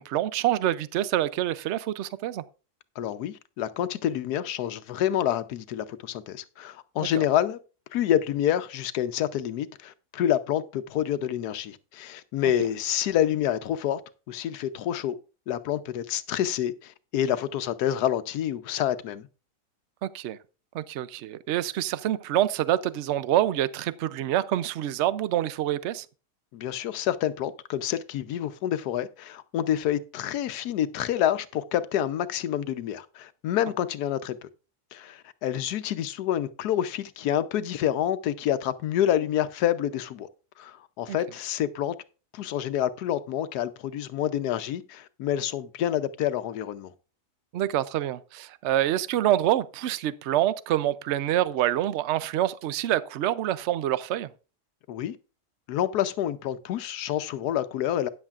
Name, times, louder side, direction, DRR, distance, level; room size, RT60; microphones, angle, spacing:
voice 1, 0.0-2.4 7.1-7.2 12.4-12.5 20.0-20.4 20.7-26.1 41.1-41.2 47.5-54.3, right 12 dB, 65° right, 0.7 m, -26 dB
voice 2, 3.0-7.6 7.9-14.0 14.3-15.2 15.5-19.3 26.5-34.4 34.9-40.3 40.6-41.9 42.3-46.9 54.9-55.2 55.7-58.1, left 11 dB, 80° left, 1.2 m, -28 dB
13.0 x 9.8 x 2.4 m
omnidirectional pair, 1.7 m